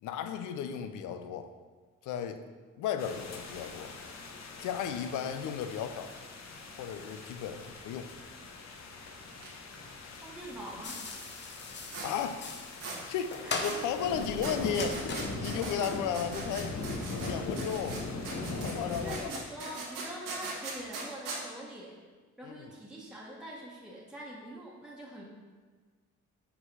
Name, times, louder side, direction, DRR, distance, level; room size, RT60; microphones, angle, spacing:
voice 1, 0.0-1.5 2.0-2.4 2.8-3.9 4.6-6.1 6.8-8.1 12.0-12.4 13.1-15.1 15.4-16.8 17.2-18.0 18.6-19.4 22.4-22.7, left 8 dB, 85° left, 9 dB, 0.6 m, -34 dB
sound 1, 3.0-19.2, left 3 dB, 60° left, 0.9 m, -41 dB
sound 2, 9.3-9.5 9.7-9.8 11.9-12.1 12.8-13.0 13.6-13.8 14.4-17.3 17.6-21.4, right 3 dB, 90° right, 1.6 m, -40 dB
voice 2, 10.2-11.0 13.4-13.7 18.8-22.0 22.4-25.2, right 1 dB, 5° right, -4 dB, 1.2 m, -44 dB
sound 3, 10.8-16.6, left 4 dB, 35° left, 0.8 m, -40 dB
5.6 x 4.0 x 5.4 m, 1.4 s
cardioid pair, 90°, 30 cm